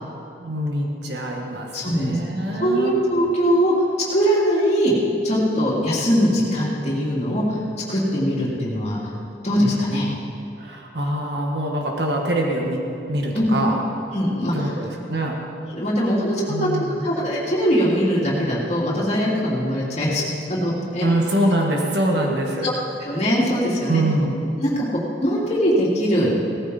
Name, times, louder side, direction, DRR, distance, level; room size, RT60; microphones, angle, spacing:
voice 1, 0.4-3.0 10.6-12.8 13.1-13.8 14.5-15.4 16.5-17.1 21.0-22.7 23.9-24.4, right 1 dB, 65° right, 0 dB, 1.6 m, -24 dB
voice 2, 1.7-2.2 2.6-3.7 4.1-4.9 5.2-7.6 7.9-9.1 9.4-10.1 13.3-13.5 14.1-14.7 15.7-16.7 17.0-20.2 20.5-21.1 22.2-22.3 22.6-22.7 23.0-24.0 24.6-24.9 25.2-26.3, equal, 40° left, -6 dB, 3.1 m, -21 dB
17.5 x 14.5 x 4.2 m, 2.7 s
head